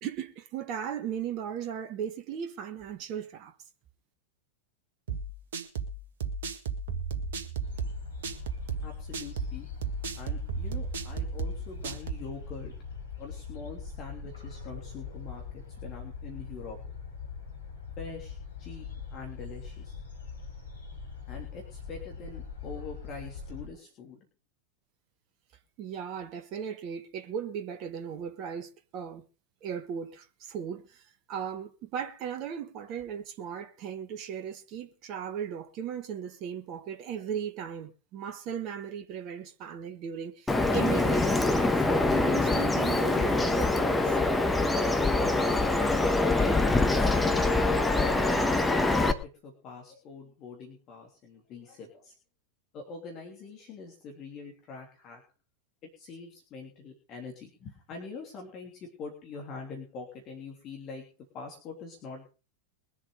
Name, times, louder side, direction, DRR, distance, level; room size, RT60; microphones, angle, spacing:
voice 1, 0.0-3.5 25.8-29.2 29.6-30.8 31.3-41.7 42.1-44.2, right 8 dB, 40° right, 1.5 m, -37 dB
sound 1, 5.1-12.3, right 5 dB, 60° right, 1.9 m, -34 dB
sound 2, 7.6-23.7, left 5 dB, 70° left, 4.7 m, -42 dB
voice 2, 8.8-9.7 10.2-12.7 13.2-16.8 18.0-19.9 21.3-24.2 46.4-47.5 47.9-52.1 52.7-55.2 56.0-61.1 61.3-62.3, left 4 dB, 35° left, 3.3 m, -44 dB
Bird vocalization bird call bird song, 40.5-49.1, left 2 dB, 10° left, 1.5 m, -24 dB
22.5 x 7.4 x 5.0 m
figure-of-eight pair, 90°, 0 cm